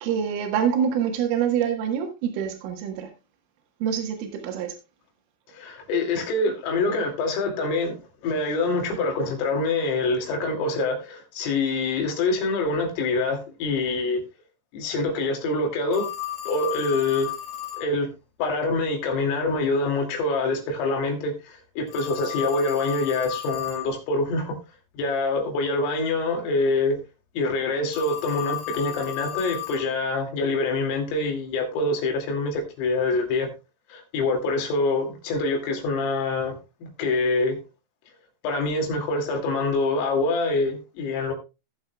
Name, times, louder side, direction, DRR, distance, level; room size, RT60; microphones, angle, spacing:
voice 1, 0.0-3.1 3.8-4.8, right 8 dB, 85° right, 4.2 m, -26 dB
voice 2, 5.5-14.2 14.7-16.1 16.5-17.3 17.8-18.1 18.4-24.6 25.0-27.0 27.4-33.5 33.9-36.5 36.8-37.6 38.4-41.3, left 3 dB, 85° left, 5.1 m, -25 dB
Telephone, 15.9-17.9 21.9-23.9 27.9-29.9, left 13 dB, 55° left, 3.4 m, -33 dB
17.5 x 7.5 x 2.3 m
omnidirectional pair, 5.7 m